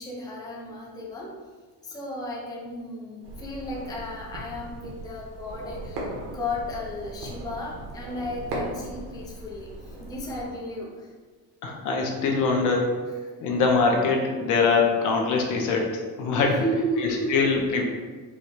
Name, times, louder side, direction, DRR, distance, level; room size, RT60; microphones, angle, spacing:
voice 1, 0.0-1.4 1.8-6.1 6.3-11.1 16.2-17.5, equal, 10° left, -3 dB, 0.6 m, -33 dB
sound 1, 3.2-10.5, right 1 dB, 75° right, 1.3 m, -38 dB
voice 2, 11.6-12.9 13.4-17.8, left 4 dB, 60° left, 1 dB, 0.8 m, -23 dB
4.8 x 2.3 x 4.3 m, 1.4 s
cardioid pair, 145°, 35 cm